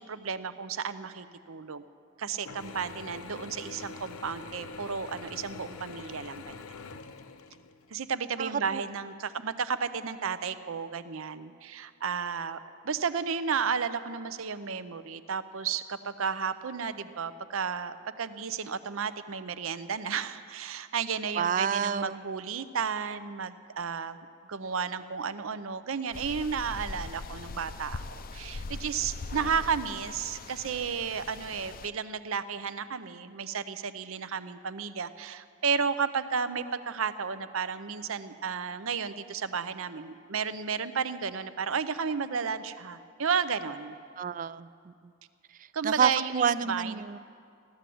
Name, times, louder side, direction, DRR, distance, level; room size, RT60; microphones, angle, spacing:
voice 1, 0.0-1.8 2.2-6.5 7.9-12.6 12.8-24.2 24.5-28.0 28.3-44.0 45.7-47.0, right 6 dB, 75° right, 12 dB, 0.6 m, -33 dB
Mechanisms / Drill, 2.5-8.0, left 4 dB, 85° left, 0.7 m, -44 dB
voice 2, 8.4-8.8 21.4-22.2 44.2-44.7 45.8-47.2, right 7 dB, 40° right, 17 dB, 0.3 m, -28 dB
sound 1, 26.1-31.9, left 3 dB, 40° left, 0.4 m, -41 dB
15.0 x 12.0 x 7.7 m, 2.4 s
head